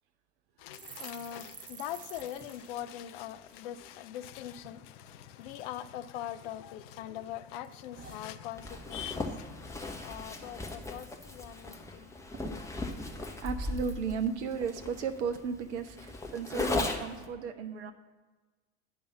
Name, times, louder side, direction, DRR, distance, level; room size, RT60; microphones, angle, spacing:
voice 1, 0.6-12.9, left 11 dB, 50° left, 0.6 m, -42 dB
sound 1, 0.7-4.3 4.6-4.8 5.1-5.7 6.2-7.0 7.3-9.0 9.3-9.5 9.8-10.3 10.7-10.8 11.1-11.8 12.0-12.1 12.3-14.2 14.7-15.0, right 5 dB, 20° right, 0.8 m, -52 dB
Zipper (clothing), 8.6-17.3, left 2 dB, 10° left, 1.0 m, -37 dB
voice 2, 13.4-17.9, right 6 dB, 65° right, 0.8 m, -35 dB
10.5 x 5.4 x 5.8 m
figure-of-eight pair, 75°, 37 cm